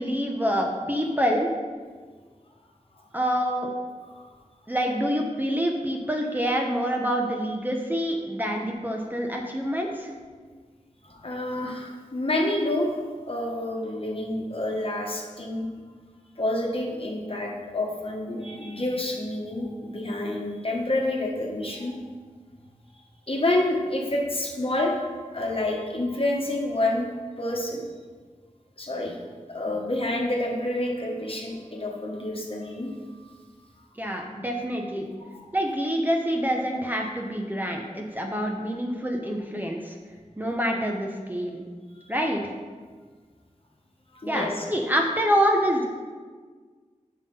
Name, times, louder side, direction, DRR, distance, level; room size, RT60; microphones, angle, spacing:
voice 1, 0.0-1.5 3.1-3.7 4.7-10.1 34.0-35.1 35.5-40.0 40.4-41.6 42.1-42.5 44.3-45.9, equal, 15° right, 1 dB, 0.8 m, -26 dB
voice 2, 11.0-13.0 13.3-15.7 16.4-22.0 23.3-27.1 27.4-27.8 28.8-29.2 29.5-32.9 35.2-35.3 44.1-44.6, left 1 dB, 45° left, -1 dB, 1.2 m, -28 dB
5.7 x 5.6 x 5.4 m, 1.5 s
wide cardioid pair, 60°, 13 cm